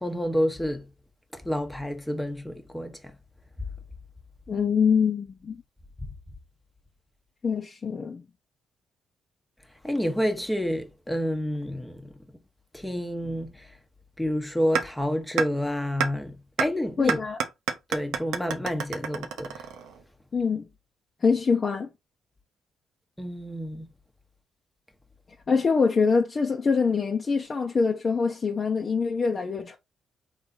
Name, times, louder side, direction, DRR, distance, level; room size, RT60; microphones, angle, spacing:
voice 1, 0.0-0.9 1.3-2.9 6.0-6.1 9.8-12.1 12.7-13.5 14.2-17.2 17.9-19.6 23.2-23.9, equal, 5° left, 1.0 m, -29 dB
voice 2, 4.5-5.6 7.4-8.2 17.0-17.4 20.3-20.7 21.2-21.9 25.5-29.8, left 5 dB, 40° left, 0.8 m, -24 dB
sound 1, 14.8-14.9 15.4-15.5 16.0-16.1 16.6-16.7 17.1-20.0, right 7 dB, 85° right, 0.8 m, -28 dB
4.0 x 3.4 x 3.9 m
cardioid pair, 90°, 0 cm